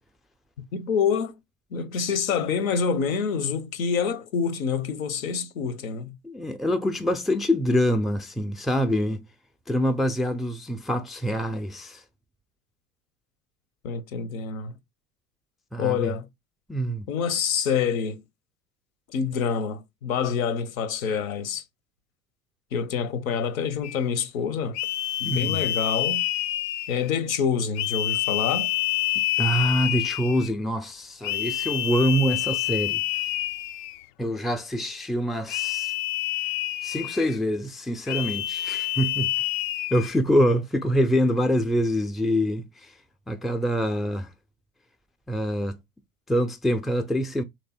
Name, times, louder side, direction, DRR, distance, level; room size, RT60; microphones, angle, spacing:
voice 1, 0.7-1.3 1.7-6.2 13.8-14.7 15.8-16.3 17.1-18.2 19.1-21.6 22.7-24.8 25.2-26.2 26.9-28.7, left 6 dB, 75° left, 0.9 m, -27 dB
voice 2, 6.2-9.3 9.7-12.0 15.7-16.1 16.7-17.1 25.2-25.6 29.4-33.0 34.2-35.9 36.8-39.3 39.9-42.9 43.3-44.3 45.3-45.8 46.3-47.4, equal, ahead, 0.4 m, -25 dB
sound 1, 23.8-24.1 24.7-27.2 27.8-30.5 31.2-34.0 35.5-37.4 38.1-40.2, left 15 dB, 60° left, 0.5 m, -28 dB
3.3 x 3.0 x 4.3 m
hypercardioid pair, 80°, 42 cm